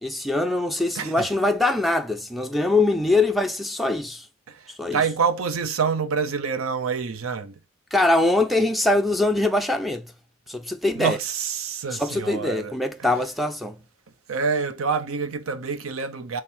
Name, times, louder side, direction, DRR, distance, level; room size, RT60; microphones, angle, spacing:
voice 1, 0.0-4.3 4.7-5.0 7.9-10.1 10.5-11.2 12.0-13.8, left 2 dB, ahead, 0.4 m, -23 dB
voice 2, 0.9-1.3 4.5-7.6 10.9-12.7 13.0-13.2 14.3-16.4, right 5 dB, 80° right, 0.6 m, -27 dB
3.5 x 3.2 x 4.3 m
head